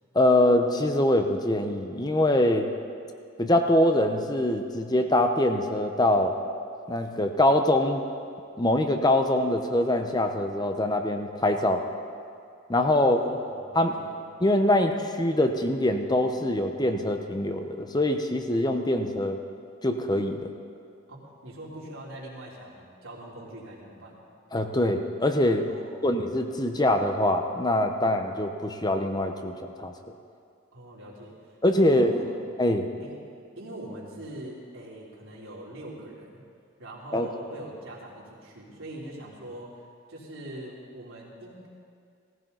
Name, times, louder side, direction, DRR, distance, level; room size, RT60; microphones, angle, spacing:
voice 1, 0.1-2.7 3.4-6.4 6.9-8.0 8.6-11.8 12.7-13.2 13.7-14.0 14.4-19.4 19.8-20.5 24.5-25.7 26.0-29.9 31.6-32.1 32.6-32.9 37.1-37.3, left 1 dB, 20° left, 6 dB, 0.9 m, -23 dB
voice 2, 13.0-14.2 21.1-24.2 25.7-26.1 30.7-31.5 31.8-32.4 33.0-33.2 33.5-36.4 36.8-39.7 40.1-41.7, right 1 dB, 85° right, -5 dB, 3.4 m, -42 dB
18.0 x 15.5 x 4.0 m, 2.3 s
head